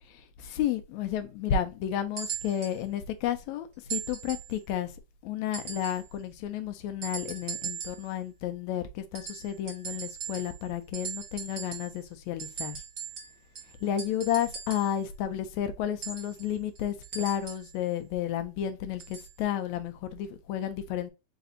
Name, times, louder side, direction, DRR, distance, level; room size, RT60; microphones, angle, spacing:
voice 1, 0.1-4.9 5.2-12.8 13.8-21.1, left 10 dB, 80° left, 1.8 m, -32 dB
sound 1, 2.2-2.8 3.9-4.6 5.5-6.1 7.0-8.1 9.1-10.7 10.9-12.0 12.4-15.0 16.0-17.7 19.0-19.3 20.2-20.3, right 8 dB, 70° right, 0.8 m, -39 dB
5.0 x 2.6 x 3.7 m
omnidirectional pair, 3.6 m